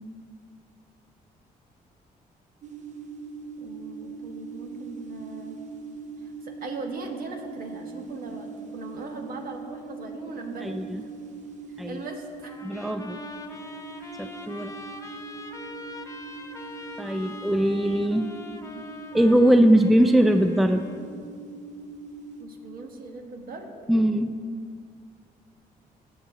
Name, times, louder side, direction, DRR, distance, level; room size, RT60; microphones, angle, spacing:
sound 1, 2.6-22.4, right 4 dB, 50° right, 0.8 m, -41 dB
voice 1, 3.6-5.6 6.2-11.1 11.9-12.6 14.5-15.0 22.4-23.7, right 3 dB, 65° right, 3 dB, 1.3 m, -39 dB
voice 2, 10.6-11.0 11.8-12.0 12.6-13.2 14.2-14.7 17.0-18.3 19.1-20.8 23.9-24.3, right 1 dB, ahead, 8 dB, 0.4 m, -21 dB
Trumpet, 12.4-21.1, left 2 dB, 20° left, 0.9 m, -43 dB
16.5 x 6.9 x 2.9 m, 2.2 s
cardioid pair, 75°, 16 cm